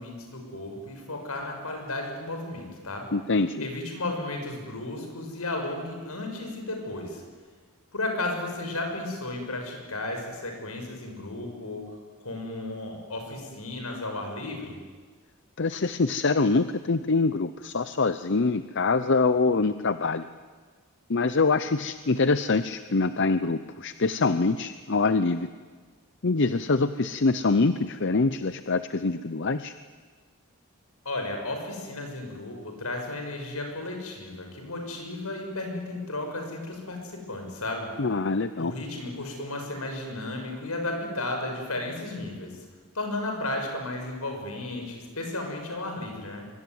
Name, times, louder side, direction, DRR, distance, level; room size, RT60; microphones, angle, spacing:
voice 1, 0.0-3.1 3.6-7.2 7.9-14.8 31.0-37.9 38.6-42.6 42.9-46.4, left 2 dB, 80° left, 3 dB, 6.8 m, -34 dB
voice 2, 3.1-3.7 15.6-20.3 21.1-25.5 26.2-29.7 38.0-38.7, left 3 dB, 55° left, 12 dB, 0.7 m, -24 dB
24.0 x 24.0 x 9.5 m, 1.5 s
head